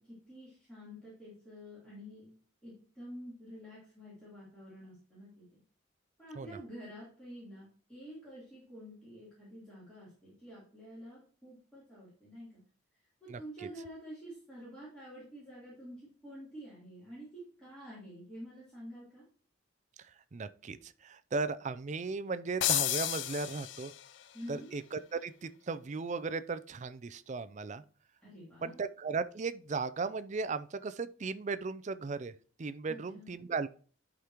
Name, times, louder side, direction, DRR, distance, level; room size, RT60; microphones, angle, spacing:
voice 1, 0.3-2.3 2.6-5.4 6.2-12.6 13.2-19.2 24.3-24.7 28.2-28.8 32.9-33.3, equal, 5° left, 3.3 m, -49 dB
voice 2, 13.3-13.7 20.3-23.9 24.5-27.8 28.6-32.3 32.6-33.7, right 4 dB, 35° right, 0.4 m, -36 dB
sound 1, 22.6-24.2, left 14 dB, 65° left, 0.4 m, -32 dB
11.5 x 5.0 x 2.9 m
head